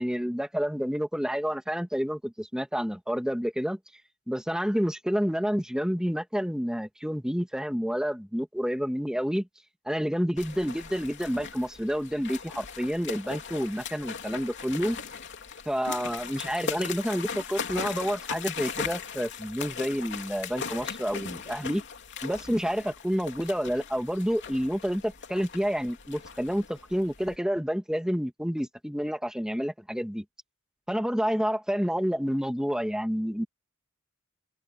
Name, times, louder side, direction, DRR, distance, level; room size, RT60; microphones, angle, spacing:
voice 1, 0.0-3.8 4.3-9.5 9.9-15.0 15.7-21.8 22.2-30.2 30.9-33.5, equal, 5° right, 2.2 m, -29 dB
sound 1, 10.4-27.4, left 6 dB, 55° left, 3.1 m, -39 dB
open air
head